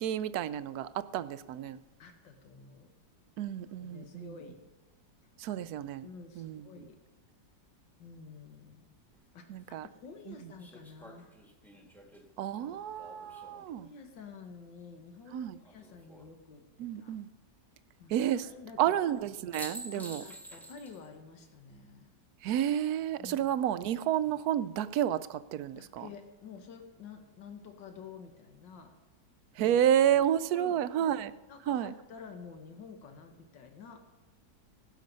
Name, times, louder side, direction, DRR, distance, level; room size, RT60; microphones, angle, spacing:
voice 1, 0.0-1.8 3.4-4.3 5.4-6.1 6.4-6.6 9.5-9.9 10.3-10.4 12.4-13.9 15.3-15.6 16.8-17.3 18.1-18.5 18.8-20.2 22.4-26.1 29.6-31.3 31.7-31.9, right 10 dB, 70° right, 14 dB, 1.0 m, -30 dB
voice 2, 2.0-2.9 3.8-4.6 5.5-5.6 6.0-7.0 8.0-8.8 9.3-11.3 13.7-16.6 17.0-17.2 18.0-19.0 20.0-22.1 23.2-23.5 25.8-29.0 29.6-29.7 30.5-31.2 31.5-34.1, left 5 dB, 85° left, 5 dB, 2.0 m, -50 dB
sound 1, 9.1-9.2 10.6-13.8 15.6-16.3 19.1-19.2 19.5-21.1 21.4-21.5 23.8-24.3, equal, ahead, 1.4 m, -49 dB
17.0 x 11.5 x 5.4 m, 1.2 s
omnidirectional pair, 1.9 m